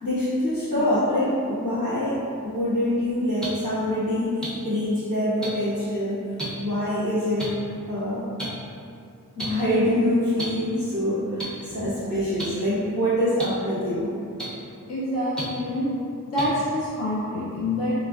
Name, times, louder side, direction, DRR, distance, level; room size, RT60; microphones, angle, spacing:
voice 1, 0.0-6.2 6.5-7.5 7.9-8.3 9.4-14.1, left 1 dB, 85° left, -13 dB, 1.4 m, -25 dB
sound 1, 3.4-3.5 4.4-4.5 5.4-5.5 6.4-6.5 7.4-7.5 8.4-8.5 9.4-9.5 10.4-10.5 11.4-11.5 12.4-12.5 13.4-13.5 14.4-14.5 15.4-15.5 16.4-16.5, right 1 dB, ahead, 0.6 m, -31 dB
voice 2, 14.9-15.9 16.3-17.9, left 1 dB, 45° left, -9 dB, 0.6 m, -26 dB
3.1 x 2.3 x 2.3 m, 2.5 s
wide cardioid pair, 115°, 34 cm